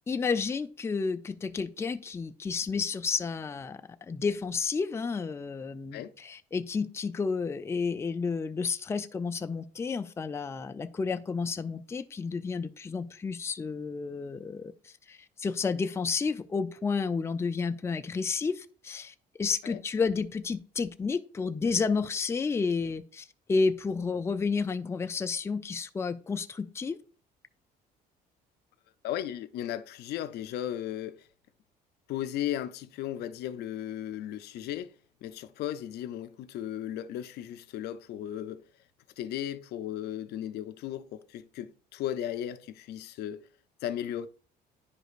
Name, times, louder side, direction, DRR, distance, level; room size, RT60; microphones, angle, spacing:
voice 1, 0.1-27.0, left 5 dB, 15° left, 0.4 m, -31 dB
voice 2, 29.0-31.3 32.1-34.9 35.2-38.6 39.2-43.5 43.8-44.3, left 11 dB, 75° left, 0.5 m, -36 dB
10.0 x 4.9 x 2.4 m
cardioid pair, 110°, 17 cm